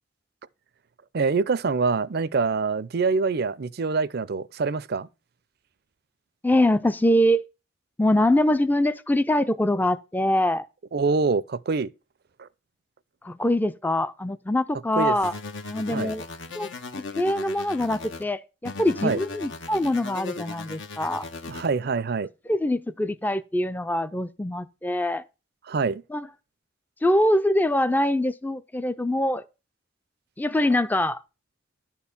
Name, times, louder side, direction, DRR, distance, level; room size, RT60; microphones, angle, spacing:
voice 1, 1.1-5.1 10.9-11.9 12.4-12.5 15.0-15.2 15.9-16.1 19.0-19.2 21.5-22.3 25.7-26.0, right 4 dB, 55° right, 0.5 m, -25 dB
voice 2, 6.4-7.5 8.0-10.7 13.2-15.3 15.7-16.2 16.5-16.7 17.0-21.3 22.5-25.2 26.1-26.3 27.0-29.4 30.4-31.2, left 1 dB, 10° left, 0.4 m, -23 dB
sound 1, 15.2-18.2 18.6-21.7, left 3 dB, 80° left, 1.2 m, -37 dB
11.0 x 4.5 x 7.0 m
head